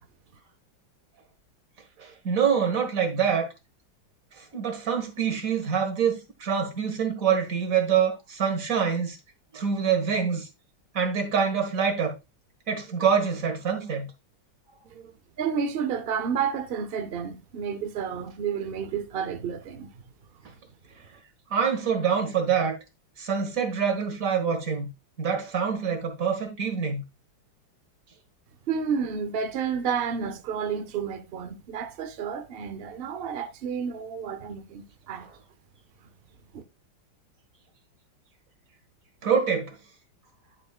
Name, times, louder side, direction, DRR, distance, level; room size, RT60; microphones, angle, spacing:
voice 1, 2.0-3.5 4.4-9.2 9.5-10.5 10.9-12.1 12.7-14.1 14.9-15.1 21.5-22.8 23.2-24.9 25.2-27.0 35.2-35.3 39.2-39.8, right 7 dB, 45° right, 1.9 m, -25 dB
voice 2, 15.4-19.9 28.7-35.3 36.5-36.6, right 7 dB, 75° right, 0.5 m, -30 dB
11.0 x 5.1 x 2.4 m
omnidirectional pair, 2.1 m